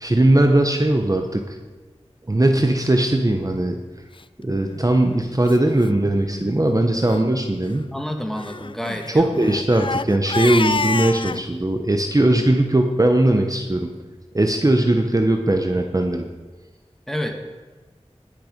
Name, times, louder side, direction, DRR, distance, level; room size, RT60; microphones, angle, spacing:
voice 1, 0.0-1.6 2.3-3.8 4.4-7.9 9.1-13.9 14.3-16.3, right 1 dB, 30° right, 4 dB, 0.9 m, -19 dB
Crying sobbing, 4.5-4.8 5.5-5.6 5.8-5.9 6.3-6.5 7.0-7.2 8.4-11.4, left 4 dB, 45° left, 0.4 m, -27 dB
voice 2, 7.9-9.4 17.1-17.4, equal, 5° left, 4 dB, 1.6 m, -29 dB
18.5 x 6.8 x 5.2 m, 1.3 s
wide cardioid pair, 55°, 12 cm